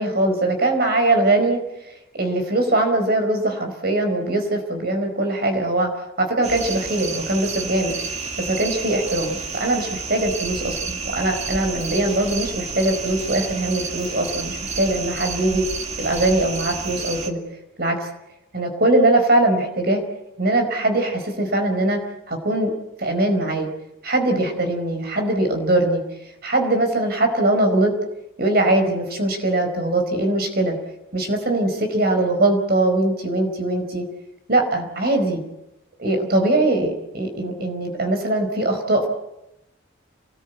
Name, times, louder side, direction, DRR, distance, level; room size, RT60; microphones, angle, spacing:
voice 1, 0.0-1.6 2.2-5.9 6.2-7.9 8.4-15.6 16.0-17.4 17.8-18.1 18.5-20.0 20.4-22.0 22.3-22.7 23.0-23.7 24.0-26.0 26.4-27.9 28.4-30.8 31.1-34.0 34.5-35.4 36.0-39.1, right 2 dB, 50° right, 5 dB, 4.7 m, -21 dB
sound 1, 6.4-17.3, right 4 dB, 35° right, 2.2 m, -30 dB
27.0 x 20.0 x 8.2 m, 0.89 s
head